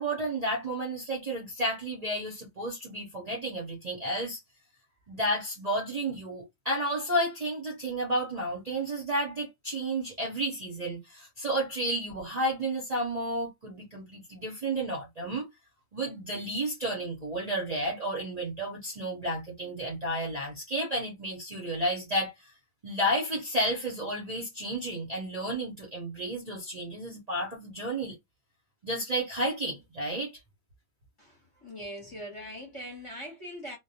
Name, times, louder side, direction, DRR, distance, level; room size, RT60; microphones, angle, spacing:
voice 1, 0.0-4.4 5.1-15.5 15.9-22.5 22.8-28.2 28.8-30.3, right 1 dB, 40° right, 0.7 m, -32 dB
voice 2, 31.2-33.8, equal, 25° left, 0.9 m, -41 dB
2.3 x 2.2 x 2.7 m
omnidirectional pair, 1.5 m